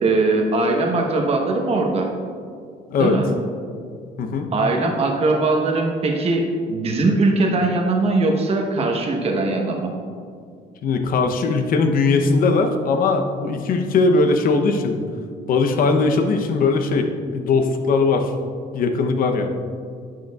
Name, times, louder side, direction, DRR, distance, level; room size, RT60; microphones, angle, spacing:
voice 1, 0.0-2.1 3.0-3.3 4.5-9.9, right 2 dB, 35° right, 1 dB, 1.0 m, -20 dB
voice 2, 4.2-4.5 10.8-15.0 15.5-17.1 17.3-18.3 18.7-19.5, left 4 dB, 55° left, 5 dB, 0.8 m, -19 dB
11.0 x 6.6 x 2.4 m, 2.2 s
cardioid pair, 110°, 17 cm